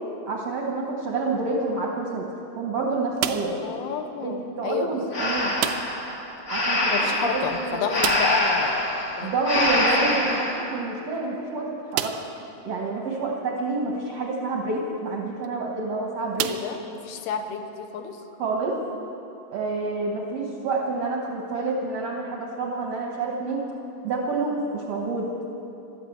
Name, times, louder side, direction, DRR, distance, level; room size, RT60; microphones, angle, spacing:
voice 1, 0.3-2.3 2.5-3.6 4.2-5.5 6.5-7.8 9.2-12.2 12.6-16.5 18.4-18.8 19.5-23.6 24.0-25.3, right 3 dB, 70° right, -2 dB, 1.5 m, -28 dB
sound 1, 3.2-3.7 5.6-6.1 6.4-6.5 6.8-6.9 8.0-8.5 10.3-10.4 11.0-11.1 11.9-12.4 13.1-13.2 15.3-15.5 16.4-17.2, right 11 dB, 90° right, 1.9 m, -30 dB
voice 2, 3.6-5.0 5.4-5.6 6.9-10.3 16.5-18.2, left 7 dB, 85° left, 6 dB, 2.7 m, -31 dB
Breathing, 5.1-10.7, left 1 dB, 60° left, 0.8 m, -25 dB
13.0 x 11.0 x 7.9 m, 3.0 s
omnidirectional pair, 4.5 m